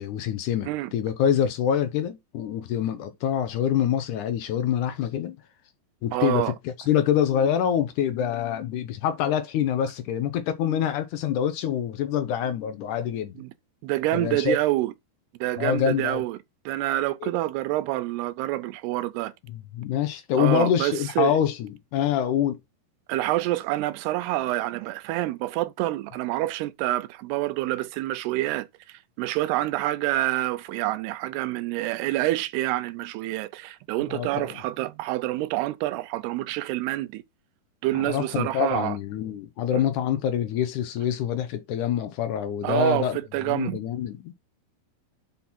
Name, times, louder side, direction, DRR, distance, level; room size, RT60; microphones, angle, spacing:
voice 1, 0.0-5.4 6.0-13.4 14.1-14.6 15.6-16.2 17.2-17.3 19.5-22.6 34.1-34.6 37.9-43.2 43.4-44.3, left 9 dB, 80° left, 1.8 m, -26 dB
voice 2, 6.1-6.5 13.4-13.5 13.8-14.9 15.4-16.4 16.7-19.3 20.4-21.4 23.1-37.2 37.8-38.9 39.7-39.8 42.6-43.8, right 16 dB, 85° right, 2.7 m, -27 dB
5.9 x 5.9 x 4.3 m
omnidirectional pair, 4.7 m